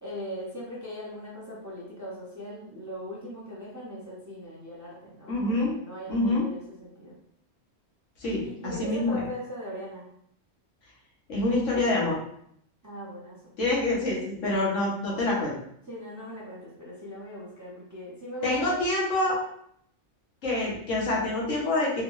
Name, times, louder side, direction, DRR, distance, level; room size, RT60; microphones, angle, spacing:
voice 1, 0.0-7.2 8.4-10.1 12.8-13.5 15.9-18.8, equal, 15° right, -7 dB, 0.7 m, -40 dB
voice 2, 5.3-5.7 6.1-6.5 8.2-9.2 11.3-12.2 13.6-15.5 18.4-19.4 20.4-22.0, left 2 dB, 75° left, -4 dB, 1.3 m, -26 dB
3.6 x 2.3 x 3.0 m, 0.69 s
omnidirectional pair, 1.3 m